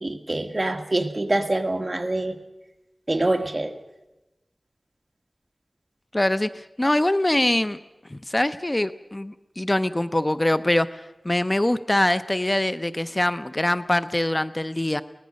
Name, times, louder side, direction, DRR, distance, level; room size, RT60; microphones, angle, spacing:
voice 1, 0.0-2.4 3.1-3.7, right 2 dB, 40° right, 6 dB, 1.7 m, -25 dB
voice 2, 6.1-7.8 8.1-15.0, left 1 dB, 25° left, 13 dB, 0.6 m, -23 dB
23.0 x 18.5 x 6.5 m, 1.0 s
wide cardioid pair, 60°, 0 cm